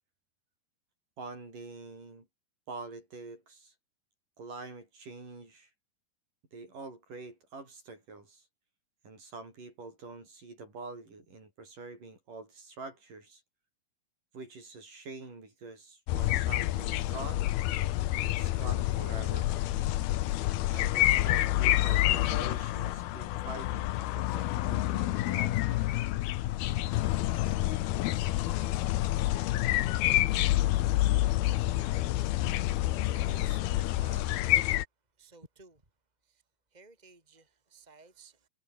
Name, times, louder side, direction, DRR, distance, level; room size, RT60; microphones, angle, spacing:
voice 1, 1.2-2.3 2.7-3.7 4.4-5.7 6.5-8.4 9.0-13.4 14.3-17.5 18.2-19.5 20.7-26.1, right 3 dB, 55° right, 9.2 m, -46 dB
sound 1, 16.1-34.8, left 15 dB, 80° left, 2.9 m, -28 dB
voice 2, 32.1-32.5 32.9-34.7 35.2-35.8 36.2-36.4 36.7-38.5, right 3 dB, 10° right, 4.8 m, -54 dB
omnidirectional pair, 4.4 m